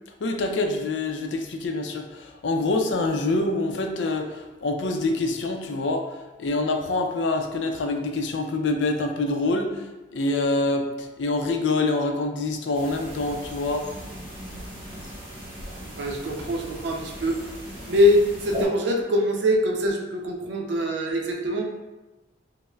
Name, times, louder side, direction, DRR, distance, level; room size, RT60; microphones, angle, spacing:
voice 1, 0.2-13.9, left 2 dB, 75° left, 4 dB, 0.4 m, -26 dB
sound 1, 12.7-18.6, right 1 dB, 30° right, 1.0 m, -38 dB
voice 2, 15.8-17.4 17.9-21.6, left 1 dB, 70° right, 1 dB, 0.5 m, -23 dB
5.3 x 2.0 x 2.3 m, 1.1 s
head